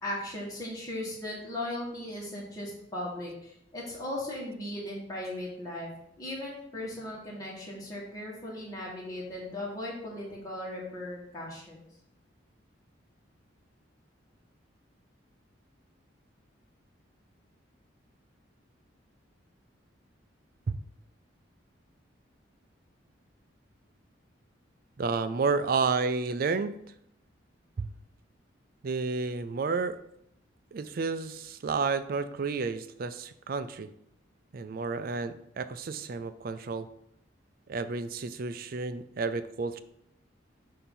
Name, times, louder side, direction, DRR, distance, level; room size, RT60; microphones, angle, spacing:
voice 1, 0.0-5.9 6.2-11.9, left 1 dB, 20° left, -5 dB, 1.5 m, -37 dB
voice 2, 25.0-26.7 27.8-27.9 28.8-30.0 30.7-33.9 34.5-36.9 37.7-39.8, right 4 dB, 50° right, 11 dB, 0.4 m, -31 dB
6.9 x 2.8 x 5.5 m, 0.75 s
head